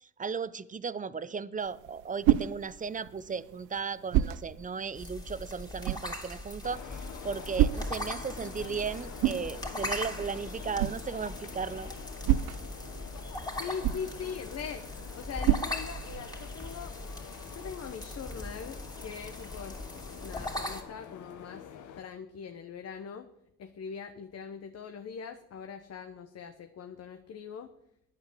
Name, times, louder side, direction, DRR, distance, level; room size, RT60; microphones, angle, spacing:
voice 1, 0.0-11.9, right 5 dB, 25° right, 16 dB, 0.7 m, -36 dB
sound 1, 1.6-16.5, right 13 dB, 85° right, 0.6 m, -33 dB
sound 2, 5.0-20.8, left 1 dB, 15° left, 2.9 m, -40 dB
sound 3, 6.6-22.0, left 8 dB, 85° left, 1.2 m, -47 dB
voice 2, 13.6-14.8 15.1-17.0 17.5-19.8 20.0-21.6 22.0-23.3 23.6-27.7, left 6 dB, 55° left, 7 dB, 1.1 m, -41 dB
11.0 x 8.9 x 7.4 m, 0.79 s
cardioid pair, 90°, 30 cm